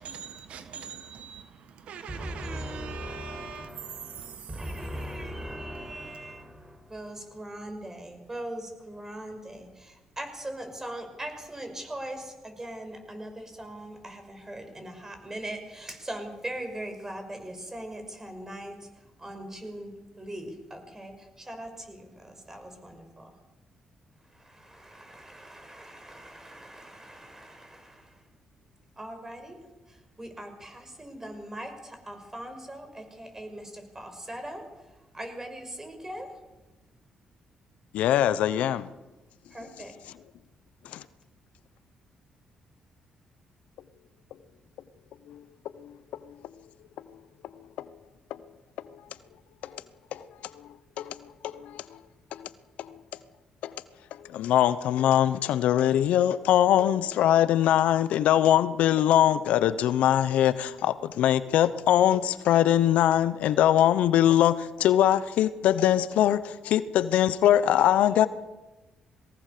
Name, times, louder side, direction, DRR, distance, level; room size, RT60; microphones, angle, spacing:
voice 1, 0.0-4.5, right 7 dB, 70° right, 1.6 m, -42 dB
voice 2, 2.1-18.9 19.2-23.3 24.3-28.2 29.0-29.6 29.9-34.6 35.1-36.3 39.5-39.9, right 1 dB, 20° right, 5.8 m, -40 dB
voice 3, 37.9-38.9 40.9-41.0 45.3-45.4 50.1-50.2 51.0-51.1 51.4-51.8 52.3-52.5 53.6-53.7 54.3-68.3, left 11 dB, 80° left, 0.9 m, -22 dB
22.0 x 18.0 x 6.8 m
supercardioid pair, 70°, 2 cm